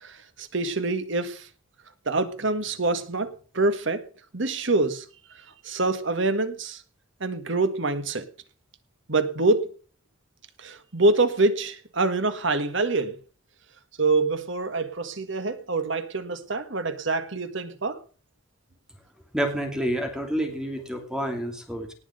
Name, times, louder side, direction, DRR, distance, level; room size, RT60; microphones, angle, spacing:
voice 1, 0.0-1.5 2.1-4.1 4.3-5.1 5.6-6.8 7.2-8.3 9.1-9.7 10.6-13.1 14.0-18.0, right 3 dB, 65° right, 10 dB, 1.8 m, -25 dB
voice 2, 19.3-21.9, right 1 dB, 5° right, 3 dB, 2.8 m, -28 dB
19.0 x 6.4 x 6.5 m, 0.38 s
head